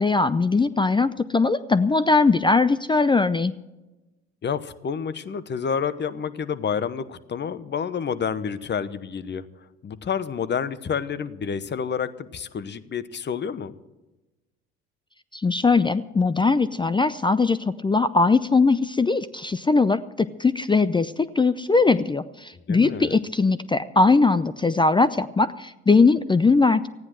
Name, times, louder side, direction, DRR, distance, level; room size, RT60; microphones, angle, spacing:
voice 1, 0.0-3.5 15.3-26.9, left 3 dB, 15° left, 14 dB, 0.5 m, -20 dB
voice 2, 4.4-9.5 9.8-13.7 22.7-23.2, left 7 dB, 35° left, 14 dB, 1.0 m, -29 dB
14.5 x 9.7 x 7.5 m, 1.1 s
hypercardioid pair, 70°, 32 cm